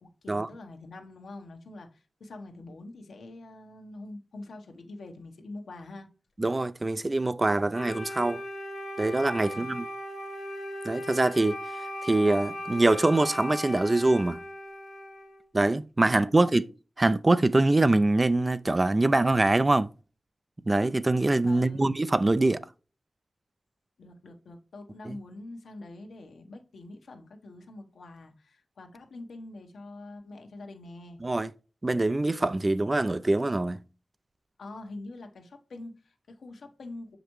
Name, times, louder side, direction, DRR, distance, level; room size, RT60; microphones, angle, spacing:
voice 1, 0.0-6.1 9.4-9.8 21.4-21.9 24.0-31.2 34.6-37.2, left 2 dB, 85° left, 1.0 m, -45 dB
voice 2, 6.4-8.4 9.0-9.9 10.8-11.6 12.0-14.4 15.5-16.6 17.0-19.9 20.7-22.6 25.0-25.2 31.2-31.5 31.8-33.8, right 2 dB, 30° right, 0.3 m, -24 dB
Wind instrument woodwind instrument, 7.7-15.4, left 1 dB, 70° left, 1.3 m, -38 dB
6.3 x 5.0 x 3.0 m
wide cardioid pair, 75°, 0 cm